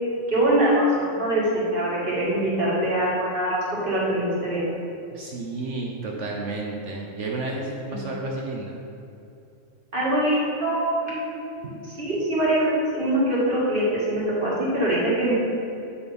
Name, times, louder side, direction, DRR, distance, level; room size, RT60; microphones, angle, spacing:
voice 1, 0.3-4.6 7.9-8.0 9.9-11.4 11.8-15.3, right 1 dB, 40° right, -7 dB, 2.2 m, -23 dB
voice 2, 5.1-8.8 11.6-11.8, right 2 dB, 65° right, -1 dB, 1.1 m, -31 dB
9.0 x 4.3 x 5.2 m, 2.7 s
omnidirectional pair, 1.4 m